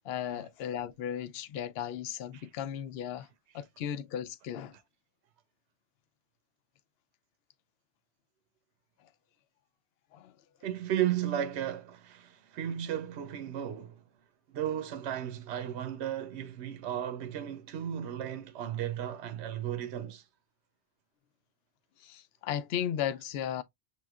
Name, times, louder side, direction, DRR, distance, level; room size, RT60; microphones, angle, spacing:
voice 1, 0.0-3.3 3.5-4.8 9.0-9.1 10.1-10.4 22.0-23.6, left 9 dB, 70° left, 0.8 m, -36 dB
voice 2, 10.6-14.0 14.5-20.2, right 10 dB, 80° right, 0.9 m, -34 dB
6.9 x 3.1 x 2.3 m
omnidirectional pair, 1.1 m